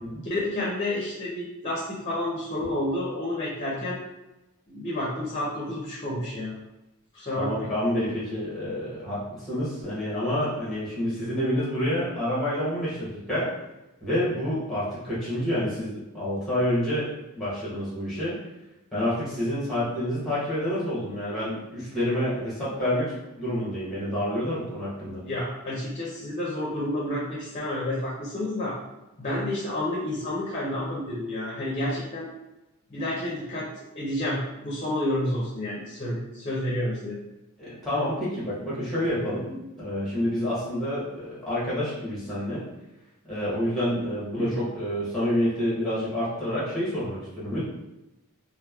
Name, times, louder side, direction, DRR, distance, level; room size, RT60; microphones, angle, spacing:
voice 1, 0.3-4.0 4.7-6.5 7.1-7.7 25.2-28.8 29.2-32.3 32.9-33.7 33.9-37.2 44.3-44.5, left 1 dB, 30° left, -6 dB, 0.5 m, -30 dB
voice 2, 7.3-13.5 14.0-17.1 17.3-18.4 18.9-25.2 37.6-42.7 43.3-47.6, equal, ahead, -9 dB, 0.8 m, -28 dB
2.9 x 2.0 x 2.3 m, 0.99 s
head